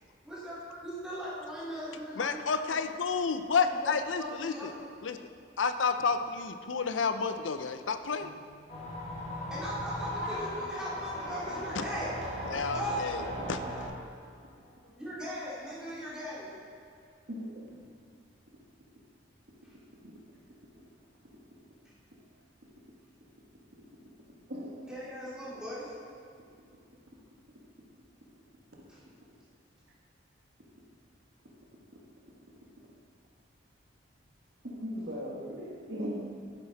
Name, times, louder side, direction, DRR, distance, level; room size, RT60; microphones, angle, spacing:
voice 1, 0.2-2.8 3.5-4.9 9.5-12.4 12.7-13.3 15.0-16.6 19.6-19.7 21.8-21.9 24.8-26.0 28.9-29.0, equal, 5° right, -9 dB, 2.9 m, -39 dB
voice 2, 2.2-4.7 5.0-5.2 5.6-8.3 11.8-11.9 12.5-13.2 13.5-13.6, left 5 dB, 80° left, 9 dB, 0.6 m, -30 dB
sound 1, 8.7-13.9, equal, 40° left, 3.0 m, -37 dB
voice 3, 17.3-17.7 20.0-20.2 24.5-24.9 34.6-36.2, equal, 60° right, -3 dB, 1.6 m, -39 dB
11.5 x 9.9 x 4.0 m, 2.4 s
head